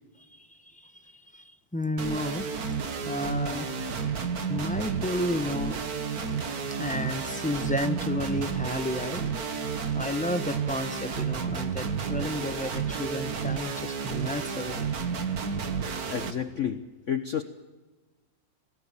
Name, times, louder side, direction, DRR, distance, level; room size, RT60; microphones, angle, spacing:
voice 1, 0.2-2.5 3.0-3.7 4.2-5.8 6.8-9.2 9.9-14.8, left 1 dB, 5° left, 9 dB, 0.6 m, -32 dB
sound 1, 2.0-16.3, right 6 dB, 55° right, 2.0 m, -31 dB
voice 2, 16.1-17.4, left 8 dB, 50° left, 9 dB, 1.1 m, -31 dB
27.5 x 18.5 x 7.4 m, 1.2 s
omnidirectional pair, 2.0 m